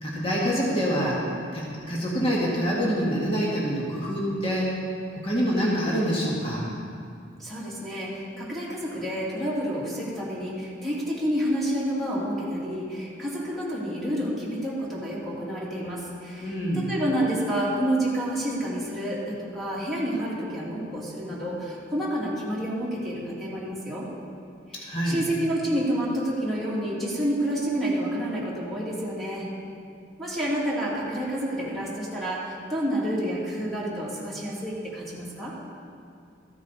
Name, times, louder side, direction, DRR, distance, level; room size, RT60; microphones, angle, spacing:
voice 1, 0.0-1.2 1.5-4.7 5.2-6.7 16.4-16.9 24.8-25.2, equal, 30° left, -5 dB, 1.8 m, -26 dB
voice 2, 7.4-24.1 25.0-29.5 30.2-35.5, equal, ahead, -7 dB, 2.5 m, -29 dB
14.5 x 9.6 x 4.1 m, 2.4 s
head